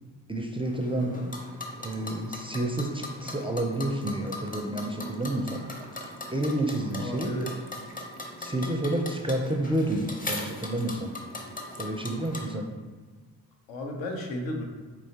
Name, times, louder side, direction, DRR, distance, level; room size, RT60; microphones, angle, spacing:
voice 1, 0.3-1.2 1.8-5.6 6.3-7.3 8.4-11.2 11.8-12.7, right 1 dB, 10° right, 2 dB, 0.4 m, -29 dB
sound 1, 0.6-12.5, left 1 dB, 20° left, 0.8 m, -40 dB
voice 2, 0.9-1.3 6.9-7.5 13.7-14.6, left 1 dB, 70° left, 2 dB, 0.9 m, -34 dB
4.6 x 3.0 x 2.8 m, 1.4 s
supercardioid pair, 50°, 45 cm